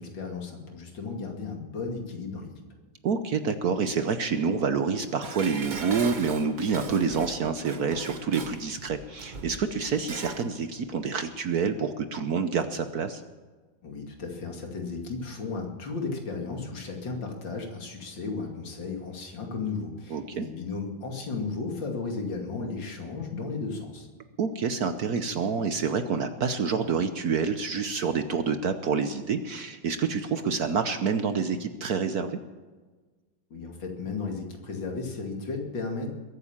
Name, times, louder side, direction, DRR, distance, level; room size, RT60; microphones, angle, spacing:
voice 1, 0.0-2.5 13.8-24.1 33.5-36.1, left 4 dB, 65° left, 2 dB, 3.1 m, -34 dB
voice 2, 3.0-13.2 20.1-20.5 24.4-32.4, right 5 dB, 60° right, 9 dB, 1.2 m, -28 dB
Dishes pots and pans, 5.2-10.5 10.8-10.9, right 4 dB, 30° right, 0.9 m, -40 dB
22.0 x 9.1 x 7.3 m, 1.3 s
omnidirectional pair, 2.2 m